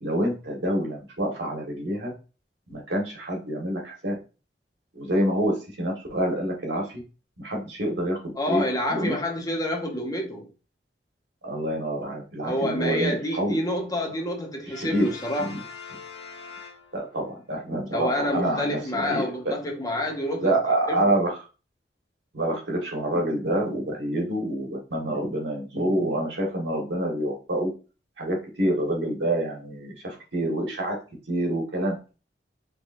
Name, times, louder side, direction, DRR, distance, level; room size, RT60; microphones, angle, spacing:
voice 1, 0.0-2.1 2.7-4.2 4.9-6.9 7.4-8.2 8.5-8.6 8.9-9.1 11.4-13.6 14.8-15.1 16.9-19.5 20.4-21.4 22.3-27.7 28.2-30.9 31.3-32.2, right 1 dB, 80° right, 1.4 m, -27 dB
voice 2, 8.4-10.5 12.4-15.6 17.9-20.6 20.9-21.1, left 1 dB, 20° left, 0.7 m, -28 dB
Brass instrument, 14.7-17.4, left 5 dB, 80° left, 1.0 m, -43 dB
3.7 x 3.4 x 2.6 m
head